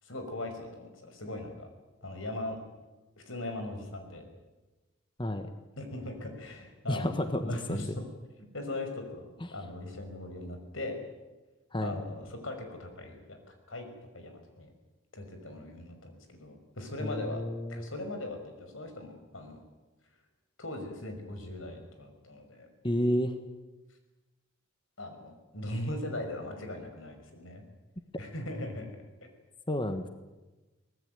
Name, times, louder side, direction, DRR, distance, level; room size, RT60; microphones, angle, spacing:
voice 1, 0.0-1.7 2.0-2.6 3.2-4.2 5.8-8.0 8.4-11.0 11.8-13.9 14.1-14.7 15.1-17.4 17.7-19.6 20.6-22.7 25.0-27.6 28.2-28.9, left 1 dB, 85° left, 6 dB, 5.7 m, -39 dB
voice 2, 5.2-5.5 6.9-7.9 9.4-9.5 11.7-11.9 17.0-17.9 22.8-23.4 29.7-30.1, left 1 dB, 25° left, 8 dB, 1.4 m, -31 dB
24.0 x 19.0 x 9.2 m, 1.1 s
head